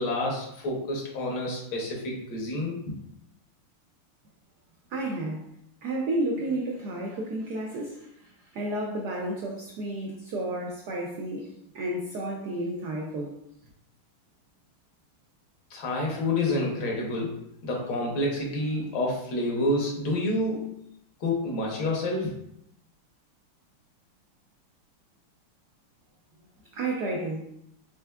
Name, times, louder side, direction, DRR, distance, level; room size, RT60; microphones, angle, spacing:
voice 1, 0.0-3.0 15.7-17.4 17.6-20.7 21.2-22.3, left 1 dB, 65° left, -2 dB, 1.6 m, -28 dB
voice 2, 4.9-5.4 5.8-13.4 26.7-27.4, right 1 dB, 80° right, -1 dB, 0.9 m, -32 dB
4.5 x 3.4 x 2.3 m, 0.75 s
omnidirectional pair, 2.4 m